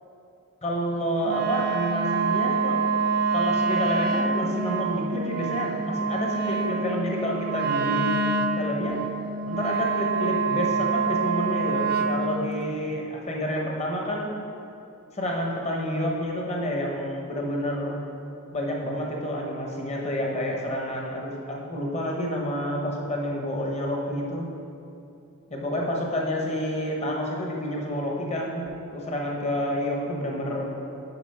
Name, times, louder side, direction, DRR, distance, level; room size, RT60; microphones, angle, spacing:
voice 1, 0.6-2.8 3.3-8.1 8.6-9.0 9.5-14.3 15.1-18.0 18.5-24.5 25.5-30.7, equal, 30° left, -1 dB, 0.9 m, -29 dB
Wind instrument woodwind instrument, 1.2-12.3, right 4 dB, 45° right, 0.4 m, -26 dB
6.9 x 5.2 x 5.5 m, 2.6 s
head